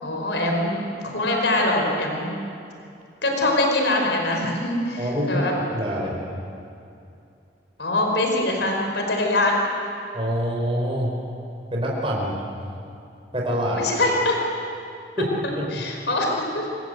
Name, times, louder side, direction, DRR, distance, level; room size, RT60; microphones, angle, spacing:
voice 1, 0.0-2.3 3.2-5.5 7.8-9.6 13.7-14.4 15.7-16.7, left 2 dB, 80° left, 1 dB, 4.9 m, -23 dB
voice 2, 5.0-6.2 10.1-11.1 11.7-12.4 13.3-13.8 15.2-15.3 15.7-15.8, equal, 30° right, -2 dB, 4.9 m, -25 dB
27.5 x 24.5 x 8.0 m, 2.6 s
head